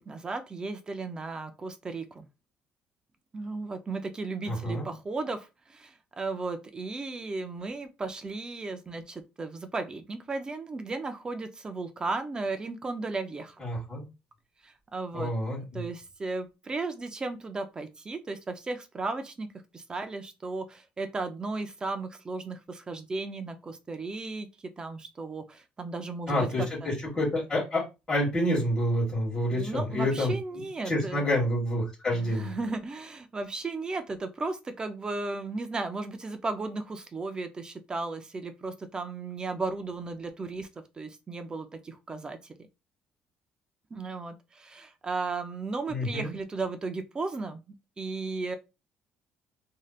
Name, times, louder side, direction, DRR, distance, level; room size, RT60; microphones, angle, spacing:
voice 1, 0.0-2.3 3.3-13.6 14.6-15.3 15.7-19.5 19.7-24.5 24.8-26.9 29.5-31.3 32.1-40.7 41.0-42.4 43.9-47.6 48.0-48.6, right 3 dB, 20° right, 0.5 m, -35 dB
voice 2, 4.5-4.9 13.6-14.0 15.1-15.8 26.3-30.3 30.8-32.6 45.9-46.3, left 1 dB, 20° left, 1.7 m, -28 dB
3.1 x 2.7 x 2.4 m
cardioid pair, 130°, 4 cm